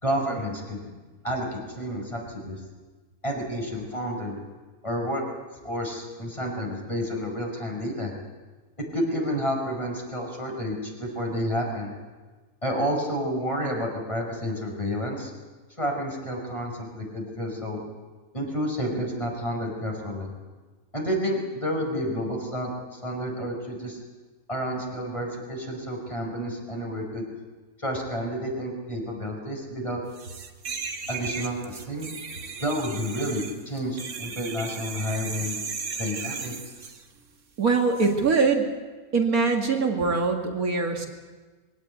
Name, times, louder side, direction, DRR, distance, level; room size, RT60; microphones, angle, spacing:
voice 1, 0.0-0.9 1.2-2.6 3.2-4.4 4.8-5.2 5.6-8.1 8.9-11.9 12.6-15.3 15.8-17.8 18.3-20.3 20.9-24.0 24.5-27.2 27.8-30.0 31.1-32.1 32.6-35.6 36.0-36.5, equal, 20° left, 0 dB, 5.4 m, -30 dB
sound 1, 30.2-37.0 37.9-38.1, right 5 dB, 55° right, 1.6 m, -36 dB
voice 2, 37.6-38.7 39.1-41.1, right 4 dB, 70° right, 2 dB, 2.6 m, -23 dB
22.5 x 17.5 x 8.4 m, 1.3 s
omnidirectional pair, 1.6 m